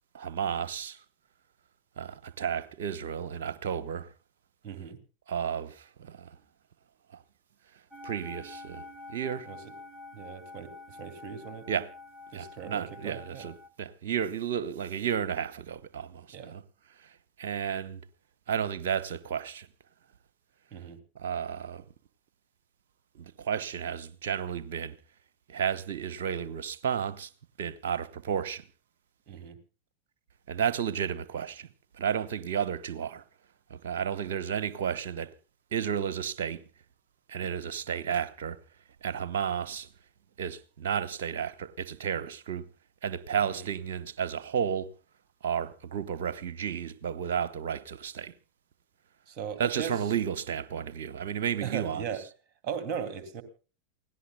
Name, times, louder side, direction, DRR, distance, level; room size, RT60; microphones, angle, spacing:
voice 1, 0.1-1.0 2.0-4.1 5.3-6.4 8.0-9.5 11.7-11.9 12.3-16.6 17.0-17.1 17.4-18.0 18.5-19.7 21.1-21.8 23.1-25.0 25.5-27.3 27.6-28.6 30.5-31.7 32.0-33.2 33.7-35.3 35.7-36.6 37.3-38.6 39.0-39.9 40.4-42.7 43.0-44.9 45.4-48.3 49.6-52.0, right 8 dB, 55° right, 1.0 m, -32 dB
voice 2, 4.6-5.0 9.5-9.6 10.1-11.7 12.3-13.5 16.3-16.5 20.7-21.0 29.3-29.6 43.5-43.7 49.3-49.9 51.6-52.2 52.6-53.4, right 7 dB, 35° right, 2.6 m, -38 dB
sound 1, 7.9-13.7, left 3 dB, 10° right, 1.2 m, -47 dB
28.5 x 17.0 x 2.3 m
figure-of-eight pair, 90°, 0 cm